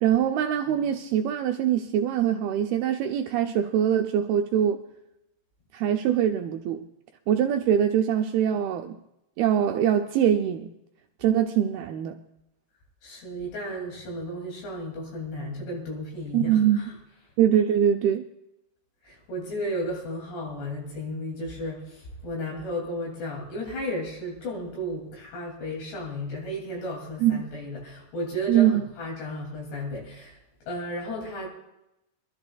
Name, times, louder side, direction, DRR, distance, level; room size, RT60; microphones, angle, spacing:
voice 1, 0.0-4.8 5.7-6.9 7.3-9.0 9.4-10.7 11.2-12.2 16.3-16.9 17.4-18.2 27.2-27.3 28.5-28.8, right 9 dB, 85° right, 5 dB, 2.2 m, -23 dB
voice 2, 13.0-17.0 19.0-30.4 30.7-31.5, equal, 75° left, -2 dB, 4.8 m, -34 dB
24.5 x 13.0 x 2.3 m, 0.88 s
omnidirectional pair, 5.0 m